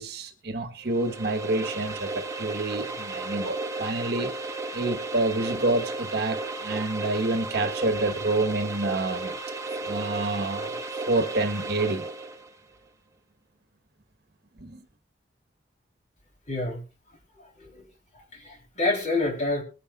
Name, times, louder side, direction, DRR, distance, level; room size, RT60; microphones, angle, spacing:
voice 1, 0.0-4.3 4.7-9.3 9.8-12.1 14.6-14.8, right 2 dB, 60° right, 1.4 m, -28 dB
sound 1, 0.8-12.5, right 3 dB, 15° right, 1.3 m, -34 dB
voice 2, 16.5-16.8 17.4-17.9 18.3-19.6, left 2 dB, 40° left, 3.7 m, -28 dB
20.5 x 10.0 x 2.5 m
head